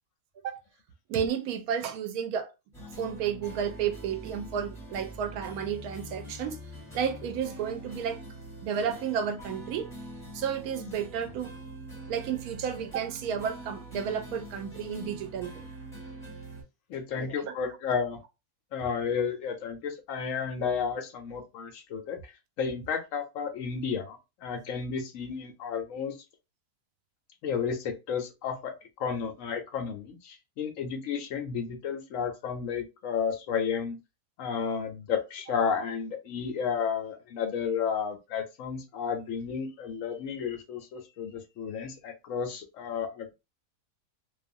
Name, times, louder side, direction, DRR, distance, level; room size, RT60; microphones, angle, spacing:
voice 1, 1.1-2.5 3.0-6.6 6.9-8.2 8.6-9.9 10.3-11.5 12.1-15.6 17.1-17.6, right 8 dB, 85° right, 1.1 m, -32 dB
sound 1, 2.7-16.6, right 1 dB, ahead, 1.4 m, -44 dB
voice 2, 16.9-18.2 18.7-22.3 22.6-26.2 27.4-34.0 34.4-43.3, left 6 dB, 70° left, 1.0 m, -32 dB
2.6 x 2.4 x 2.6 m
omnidirectional pair, 1.5 m